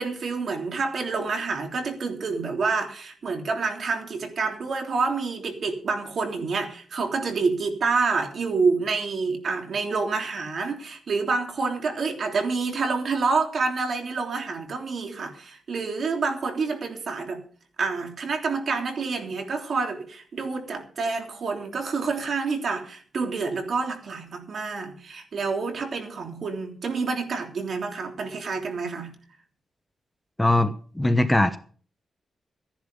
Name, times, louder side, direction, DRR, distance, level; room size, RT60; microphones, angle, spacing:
voice 1, 0.0-17.4 17.8-29.1, right 4 dB, 60° right, 3 dB, 3.3 m, -28 dB
voice 2, 30.4-30.7 30.9-31.6, left 1 dB, 10° left, 10 dB, 1.0 m, -20 dB
14.5 x 10.5 x 5.3 m, 0.43 s
cardioid pair, 110°, 0 cm